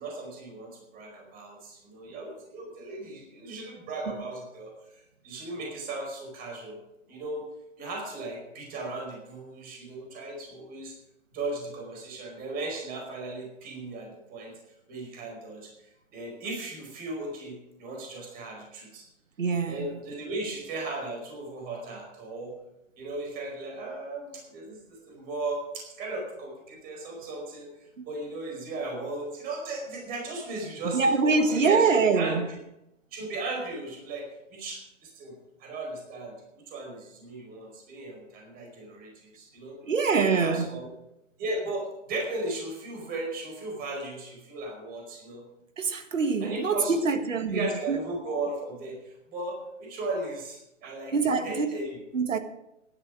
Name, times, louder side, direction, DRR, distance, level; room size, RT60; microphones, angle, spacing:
voice 1, 0.0-6.8 7.1-7.5 7.8-10.9 11.3-14.5 14.9-15.7 16.1-19.0 19.6-22.5 23.0-27.7 28.0-32.6 33.1-35.3 35.6-36.3 36.7-39.8 40.1-40.9 41.4-45.4 46.4-47.1 47.5-52.0, right 2 dB, 25° right, 4.8 m, -36 dB
voice 2, 19.4-19.9 30.9-32.4 39.9-40.8 45.8-48.0 50.8-51.8 52.1-52.4, right 4 dB, 80° right, 1.8 m, -25 dB
15.0 x 11.5 x 4.9 m
hypercardioid pair, 135°, 38 cm